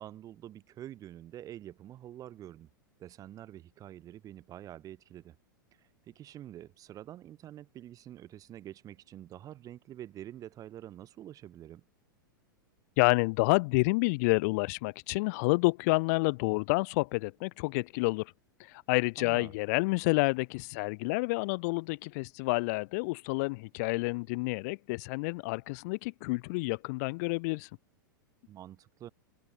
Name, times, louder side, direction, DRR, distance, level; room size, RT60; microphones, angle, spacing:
voice 1, 0.0-2.7 3.0-5.3 6.1-11.8 19.2-19.5 28.5-29.1, right 12 dB, 30° right, 4.8 m, -47 dB
voice 2, 13.0-18.3 18.6-27.7, left 27 dB, 50° left, 1.2 m, -29 dB
figure-of-eight pair, 95°, 11 cm